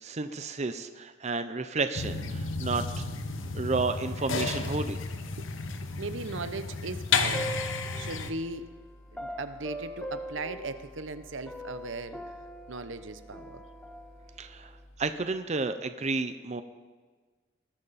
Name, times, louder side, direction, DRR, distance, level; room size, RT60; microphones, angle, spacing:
voice 1, 0.0-3.0 3.5-5.0 14.4-14.7 15.0-16.6, right 3 dB, 35° right, 10 dB, 0.7 m, -31 dB
sound 1, 1.9-8.3, left 4 dB, 85° left, 1.2 m, -32 dB
voice 2, 5.4-8.6 9.1-12.4 12.7-13.6, right 3 dB, 75° right, 11 dB, 0.9 m, -38 dB
sound 2, 7.1-8.5 9.2-11.2 11.5-14.4, equal, 5° left, 1.2 m, -41 dB
sound 3, 7.9-15.1, equal, 35° left, 2.7 m, -54 dB
20.5 x 13.0 x 4.2 m, 1.4 s
head